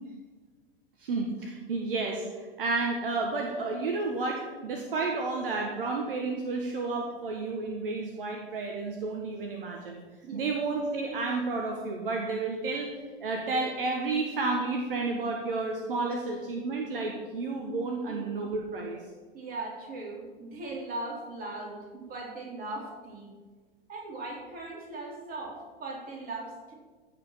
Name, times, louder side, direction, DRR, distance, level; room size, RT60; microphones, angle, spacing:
voice 1, 1.0-2.2 2.6-10.0 10.3-12.9 13.2-19.0, right 3 dB, 65° right, 2 dB, 1.6 m, -31 dB
voice 2, 19.3-23.3 23.9-26.7, right 2 dB, 30° right, -2 dB, 4.0 m, -39 dB
15.5 x 5.2 x 6.3 m, 1.3 s
figure-of-eight pair, 90°, 29 cm